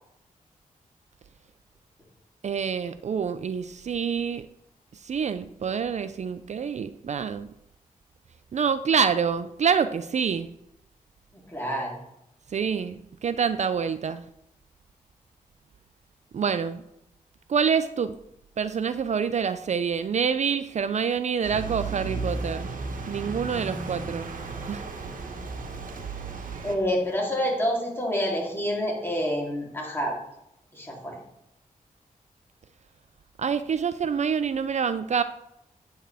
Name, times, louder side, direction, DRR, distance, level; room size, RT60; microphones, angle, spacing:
voice 1, 2.4-4.5 5.0-7.5 8.5-10.5 12.5-14.2 16.3-16.8 17.5-18.2 18.6-22.7 23.1-24.3 24.7-24.8 33.4-35.2, right 6 dB, 55° right, 12 dB, 0.4 m, -26 dB
voice 2, 11.3-11.9 26.6-30.2 30.7-31.2, equal, 15° left, -3 dB, 3.2 m, -28 dB
sound 1, 21.4-26.8, right 3 dB, 70° right, 1.2 m, -34 dB
8.8 x 8.7 x 3.4 m, 0.81 s
cardioid pair, 80°, 14 cm